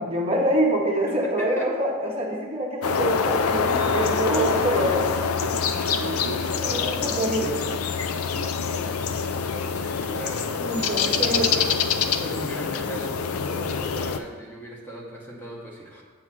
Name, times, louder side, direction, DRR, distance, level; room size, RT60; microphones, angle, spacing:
voice 1, 0.0-5.1 5.5-5.7 6.6-7.6 10.6-11.5, right 1 dB, 25° right, -1 dB, 0.8 m, -25 dB
voice 2, 1.1-1.7 5.8-7.3 9.5-10.4 10.7-16.0, right 1 dB, 10° left, -2 dB, 0.9 m, -39 dB
sound 1, 2.8-14.2, left 6 dB, 75° left, 0.4 m, -25 dB
Train / Sliding door, 3.6-13.3, right 4 dB, 65° right, 0.6 m, -41 dB
8.3 x 3.2 x 6.0 m, 1.5 s
head